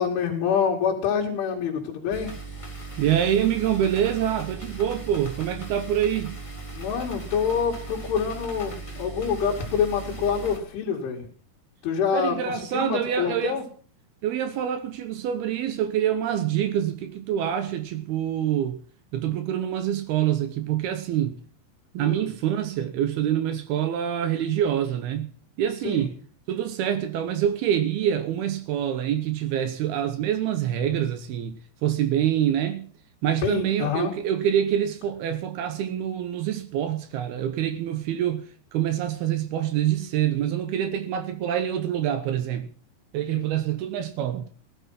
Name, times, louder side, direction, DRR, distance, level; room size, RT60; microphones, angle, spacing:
voice 1, 0.0-2.3 6.7-11.3 11.8-13.6 22.0-22.3 25.8-26.1 33.4-34.1 43.3-43.4, left 7 dB, 85° left, 4.8 m, -26 dB
sound 1, 2.1-10.6, right 3 dB, 30° left, 0.6 m, -38 dB
voice 2, 3.0-6.4 12.1-13.6 14.2-18.8 19.1-21.4 21.9-25.3 25.6-26.1 26.5-31.6 31.8-32.9 33.2-38.5 38.7-42.7 43.1-44.4, right 10 dB, 75° right, 2.5 m, -26 dB
15.5 x 11.5 x 5.7 m
omnidirectional pair, 5.4 m